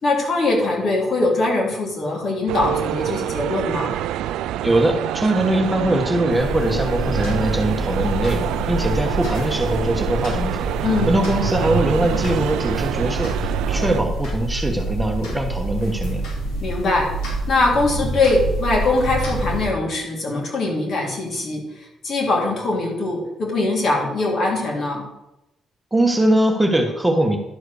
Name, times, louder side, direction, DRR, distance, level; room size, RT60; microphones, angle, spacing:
voice 1, 0.0-4.0 10.8-11.2 16.6-17.1 17.5-25.1, left 2 dB, 55° left, -2 dB, 3.5 m, -22 dB
sound 1, 2.5-14.0, right 12 dB, 90° right, 0.3 m, -26 dB
voice 2, 4.6-16.2 25.9-27.4, right 1 dB, 10° right, 2 dB, 1.3 m, -21 dB
sound 2, 6.3-19.7, right 1 dB, 85° left, 4.0 m, -27 dB
11.5 x 4.7 x 6.5 m, 0.91 s
cardioid pair, 90°, 0 cm